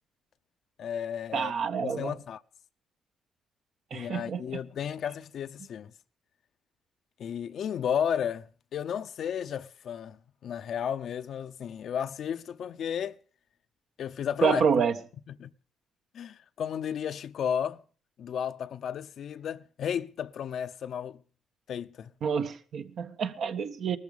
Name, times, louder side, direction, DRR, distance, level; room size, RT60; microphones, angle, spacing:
voice 1, 0.8-1.5 1.8-2.4 3.9-5.9 7.2-10.2 10.4-13.1 14.0-14.6 15.3-15.5 16.1-17.8 18.2-21.2 21.7-22.1, left 8 dB, 65° left, 0.8 m, -33 dB
voice 2, 1.3-2.1 3.9-4.6 14.4-14.9 22.2-24.0, right 6 dB, 65° right, 1.5 m, -28 dB
19.0 x 14.0 x 5.2 m
cardioid pair, 90°, 0 cm